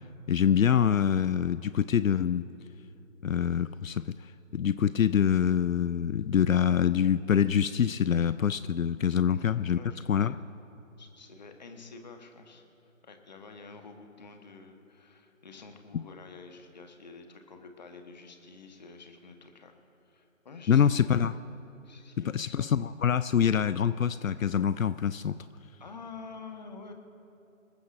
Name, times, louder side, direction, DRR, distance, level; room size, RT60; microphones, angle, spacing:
voice 1, 0.3-2.4 3.2-4.1 4.5-9.8 10.1-10.4 15.9-16.0 20.7-21.3 22.2-25.4, left 8 dB, 75° left, 15 dB, 0.5 m, -25 dB
voice 2, 9.3-10.0 11.0-19.7 20.0-21.1 21.8-22.5 25.8-26.9, left 4 dB, 30° left, 5 dB, 1.2 m, -48 dB
26.0 x 14.5 x 2.6 m, 2.8 s
figure-of-eight pair, 160°, 41 cm